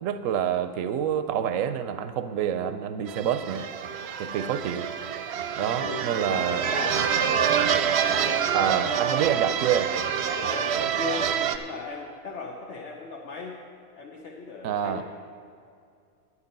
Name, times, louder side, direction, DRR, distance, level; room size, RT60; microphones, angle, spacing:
voice 1, 0.0-3.7 4.2-4.9 5.6-6.7 7.6-7.7 8.5-9.9 14.6-15.0, right 9 dB, 90° right, 10 dB, 1.0 m, -27 dB
sound 1, 3.1-11.6, right 8 dB, 65° right, 0.8 m, -27 dB
voice 2, 5.6-7.1 8.1-9.6 10.3-13.6 14.0-15.0, left 4 dB, 65° left, -1 dB, 1.2 m, -37 dB
9.9 x 9.6 x 5.3 m, 2.3 s
omnidirectional pair, 1.3 m